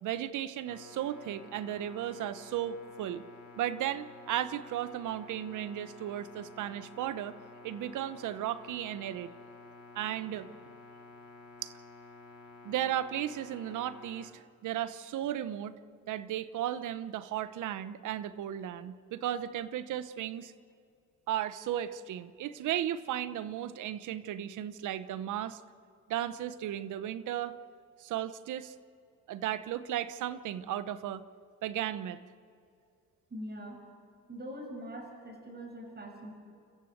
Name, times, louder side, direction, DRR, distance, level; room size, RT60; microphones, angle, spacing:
voice 1, 0.0-3.2 3.6-7.3 7.6-9.3 9.9-10.5 11.6-11.7 12.6-15.7 16.1-20.5 21.3-25.6 26.1-27.5 28.0-28.7 29.3-31.2 31.6-32.2, right 11 dB, 80° right, 13 dB, 1.0 m, -35 dB
sound 1, 0.6-14.3, left 3 dB, 70° left, 3.8 m, -52 dB
voice 2, 33.3-33.8 34.3-36.3, equal, 35° right, 2 dB, 6.8 m, -43 dB
29.5 x 14.5 x 8.0 m, 2.4 s
cardioid pair, 90°, 30 cm